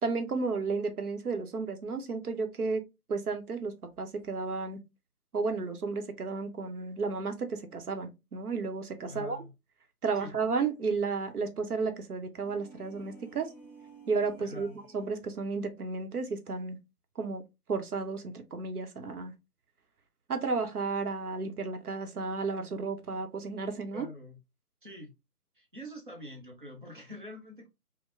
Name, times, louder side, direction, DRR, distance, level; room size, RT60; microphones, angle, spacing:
voice 1, 0.0-2.8 3.1-4.8 5.3-9.4 10.0-13.5 14.1-14.7 14.9-16.8 17.2-17.4 17.7-19.3 20.3-24.1, right 4 dB, 70° right, 0.8 m, -33 dB
voice 2, 9.1-9.5 10.2-10.3 14.4-14.8 23.9-24.4 24.8-25.1 25.6-27.7, left 1 dB, 35° right, 0.7 m, -45 dB
sound 1, 12.3-15.3, right 3 dB, 30° left, 0.7 m, -53 dB
3.7 x 2.1 x 2.5 m
figure-of-eight pair, 160°, 47 cm